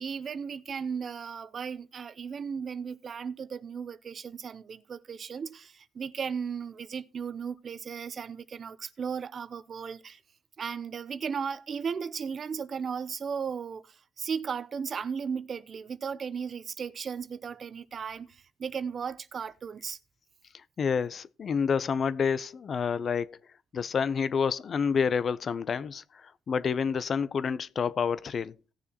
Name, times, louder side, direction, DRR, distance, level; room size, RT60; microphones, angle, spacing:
voice 1, 0.0-10.2 10.6-20.0, right 6 dB, 50° right, 0.6 m, -36 dB
voice 2, 20.8-23.4 23.7-28.5, left 6 dB, 50° left, 0.5 m, -28 dB
17.0 x 6.9 x 2.9 m
cardioid pair, 90°, 0 cm